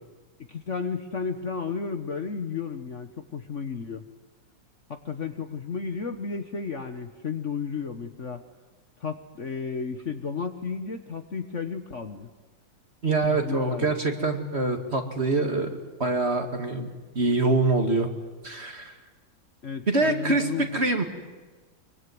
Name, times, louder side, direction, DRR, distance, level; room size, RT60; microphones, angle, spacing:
voice 1, 0.5-4.0 4.9-8.4 9.0-12.3 13.3-13.9 19.6-20.8, left 5 dB, 45° left, 7 dB, 1.4 m, -33 dB
voice 2, 13.0-15.7 16.0-16.9 17.1-18.1 18.4-18.9 19.9-20.4 20.7-21.0, right 3 dB, 35° right, 5 dB, 2.5 m, -24 dB
24.5 x 24.0 x 9.5 m, 1.3 s
omnidirectional pair, 2.0 m